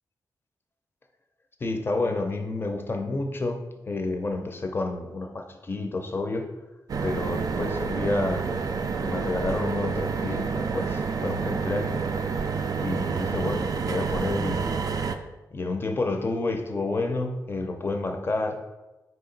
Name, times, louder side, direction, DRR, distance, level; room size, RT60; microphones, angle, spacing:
voice 1, 1.6-6.5 7.0-8.5 9.0-14.8 15.5-18.6, left 2 dB, 30° left, 5 dB, 0.5 m, -30 dB
sound 1, 6.9-15.2, right 5 dB, 55° right, 0.3 m, -28 dB
4.8 x 2.8 x 3.9 m, 1.1 s
wide cardioid pair, 120°, 7 cm